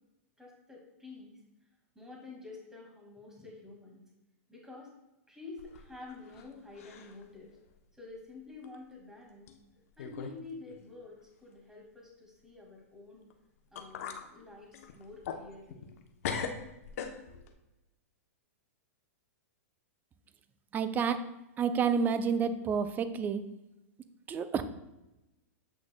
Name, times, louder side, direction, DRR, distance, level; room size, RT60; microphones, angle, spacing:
voice 1, 0.4-1.4 2.0-4.0 4.5-4.9 5.3-7.5 8.0-13.3 13.7-15.9, left 3 dB, 5° right, -2 dB, 1.9 m, -49 dB
sound 1, 5.6-6.5 6.8-7.2 7.7-7.8 8.6-8.8 9.5-9.6 10.0-10.4 10.7-10.8 13.3-13.4 13.8-14.3 14.7-16.0 16.2-17.5, left 6 dB, 65° left, 0.8 m, -39 dB
voice 2, 20.7-21.2 21.6-23.4 24.3-24.6, right 6 dB, 20° right, 11 dB, 0.4 m, -29 dB
7.9 x 6.1 x 2.2 m, 0.94 s
hypercardioid pair, 125°, 8 cm